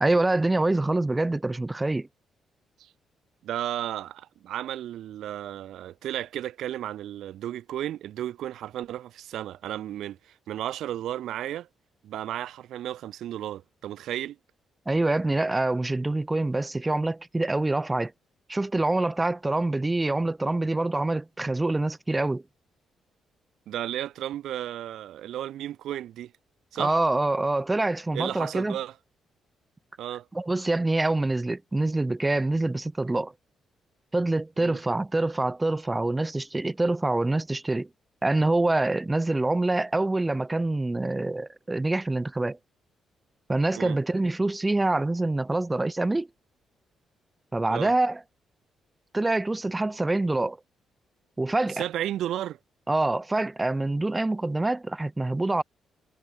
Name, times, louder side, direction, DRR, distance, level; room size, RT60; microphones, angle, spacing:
voice 1, 0.0-2.1 14.9-18.1 18.5-22.4 26.8-28.8 30.3-33.3 34.1-37.9 38.2-42.6 43.5-46.3 47.5-48.2 49.1-50.6 51.4-51.8 52.9-55.6, right 2 dB, 15° right, 0.7 m, -25 dB
voice 2, 3.4-11.7 12.0-14.4 23.7-26.3 26.7-27.0 28.1-28.9 30.0-30.3 34.6-34.8 43.7-44.0 47.7-47.9 51.7-52.6, right 12 dB, 80° right, 0.8 m, -33 dB
cardioid pair, 80°, 0 cm